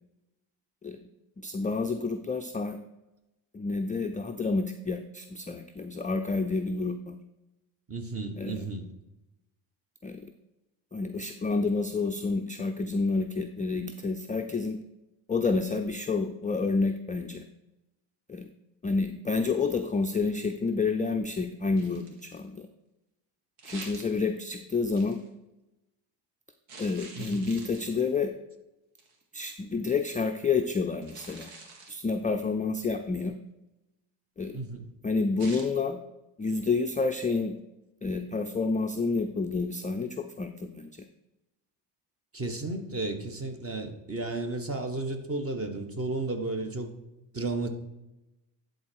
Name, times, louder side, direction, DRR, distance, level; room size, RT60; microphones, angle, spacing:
voice 1, 1.4-2.8 3.5-7.2 8.4-8.7 10.0-10.2 10.9-14.8 15.3-17.4 18.3-18.5 18.8-22.7 23.6-25.2 26.8-28.3 29.3-31.5 31.9-33.3 34.4-34.6 35.0-36.0 36.4-37.6 38.0-40.9, left 4 dB, 15° left, 5 dB, 0.4 m, -29 dB
voice 2, 7.9-8.9 27.1-27.5 34.5-34.9 42.3-46.9 47.3-47.7, right 2 dB, 30° right, 6 dB, 1.4 m, -33 dB
sound 1, 21.8-22.5 23.6-24.5 25.0-25.3 26.7-28.2 29.0-29.2 31.0-32.0 35.4-35.7, right 3 dB, 80° right, 1.8 m, -47 dB
11.5 x 4.0 x 4.6 m, 0.95 s
cardioid pair, 90°, 49 cm